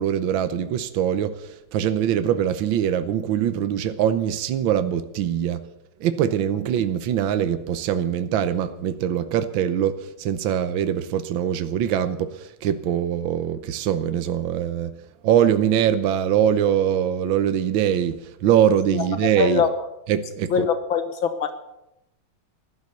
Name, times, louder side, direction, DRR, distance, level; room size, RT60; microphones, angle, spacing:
voice 1, 0.0-5.6 6.0-14.9 15.2-19.6 20.1-20.7, right 9 dB, 75° right, 1.6 m, -23 dB
voice 2, 19.4-19.7 20.5-21.5, left 6 dB, 80° left, 2.0 m, -22 dB
15.5 x 12.5 x 6.8 m
omnidirectional pair, 2.2 m